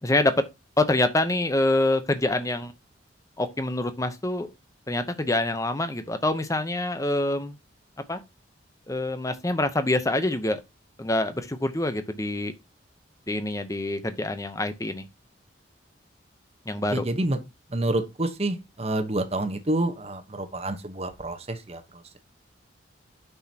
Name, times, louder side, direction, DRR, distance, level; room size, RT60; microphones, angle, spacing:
voice 1, 0.0-0.3 0.8-2.7 3.4-4.5 4.9-7.6 8.1-8.2 8.9-10.6 11.0-12.5 13.3-15.1 16.7-17.0, left 2 dB, 15° left, 0.7 m, -26 dB
voice 2, 16.9-17.4 17.7-22.0, right 1 dB, 30° right, 1.0 m, -28 dB
9.0 x 6.1 x 2.8 m
head